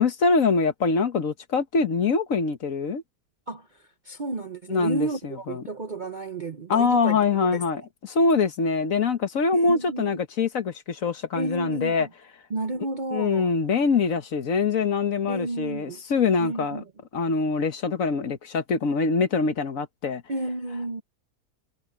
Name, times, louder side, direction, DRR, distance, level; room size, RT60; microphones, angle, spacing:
voice 1, 0.0-3.0 4.7-5.6 6.7-12.1 13.1-16.8 17.1-20.2, left 4 dB, 55° left, 1.5 m, -24 dB
voice 2, 3.5-7.2 7.5-7.6 9.5-10.2 11.4-12.1 12.5-13.5 15.3-16.0 16.4-16.8 20.3-21.0, right 2 dB, 40° right, 0.8 m, -32 dB
omnidirectional pair, 1.7 m